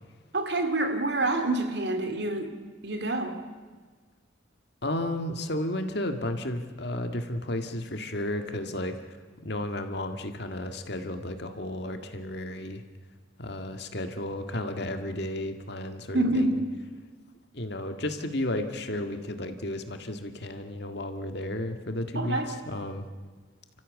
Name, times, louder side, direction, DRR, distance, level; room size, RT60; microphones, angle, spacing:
voice 1, 0.3-2.5 2.8-3.4 16.1-16.7 22.1-22.5, right 2 dB, 60° right, 6 dB, 2.6 m, -27 dB
voice 2, 4.8-8.9 9.4-12.8 13.4-16.5 17.5-23.1, left 1 dB, 60° left, 6 dB, 1.9 m, -33 dB
29.0 x 15.0 x 8.5 m, 1.5 s
head